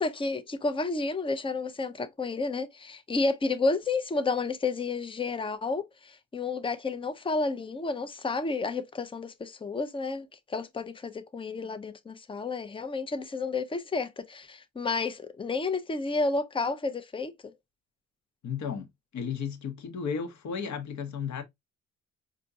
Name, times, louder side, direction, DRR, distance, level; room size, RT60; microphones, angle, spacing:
voice 1, 0.0-17.5, left 3 dB, 15° left, 0.6 m, -31 dB
voice 2, 18.4-18.9 19.1-21.4, left 6 dB, 55° left, 1.1 m, -34 dB
4.3 x 2.6 x 2.6 m
supercardioid pair, 65°, 35 cm